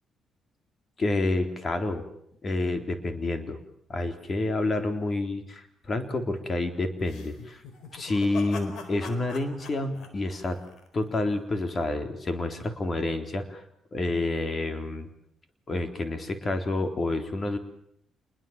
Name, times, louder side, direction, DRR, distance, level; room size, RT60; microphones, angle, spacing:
voice 1, 1.0-2.0 2.4-3.6 3.9-7.6 7.9-10.6 10.9-13.6 13.9-15.1 15.7-17.6, left 2 dB, 35° left, 7 dB, 3.7 m, -29 dB
sound 1, 7.0-11.2, left 4 dB, 75° left, 4.3 m, -43 dB
27.5 x 21.5 x 7.4 m, 0.72 s
cardioid pair, 90°, 0 cm